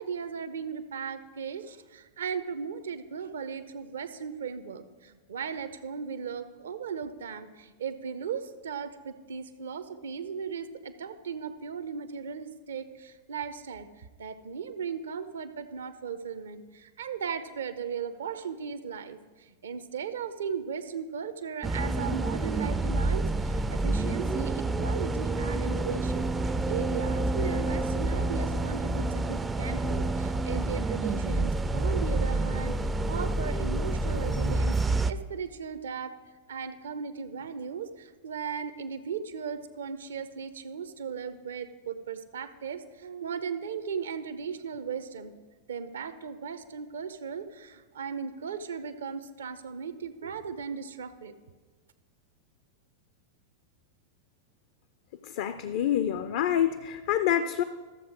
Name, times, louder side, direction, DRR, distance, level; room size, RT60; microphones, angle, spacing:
voice 1, 0.0-13.9 14.2-32.8 33.1-36.1 36.5-45.3 45.7-51.3, right 6 dB, 65° right, 12 dB, 0.6 m, -37 dB
sound 1, 21.6-35.1, right 2 dB, 15° right, 0.4 m, -28 dB
voice 2, 55.2-57.6, left 10 dB, 50° left, 11 dB, 0.4 m, -27 dB
13.0 x 7.4 x 4.8 m, 1.3 s
figure-of-eight pair, 90°, 0 cm